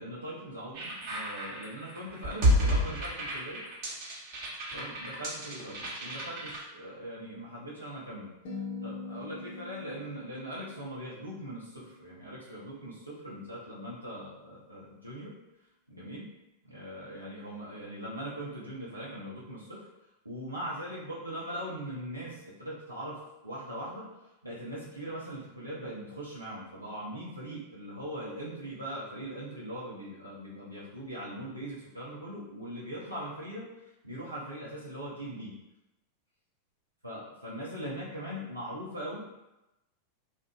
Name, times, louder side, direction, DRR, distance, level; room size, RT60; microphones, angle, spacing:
voice 1, 0.0-3.6 4.7-8.3 8.8-15.3 15.9-16.3 16.6-19.9 20.2-24.1 24.4-33.7 34.0-35.5 37.0-39.3, right 1 dB, 85° right, -8 dB, 0.5 m, -40 dB
sound 1, 0.7-6.6, equal, 45° right, 0.7 m, -30 dB
sound 2, 8.5-12.8, left 3 dB, 50° left, 0.6 m, -44 dB
2.5 x 2.1 x 2.3 m, 0.95 s
figure-of-eight pair, 90°, 0 cm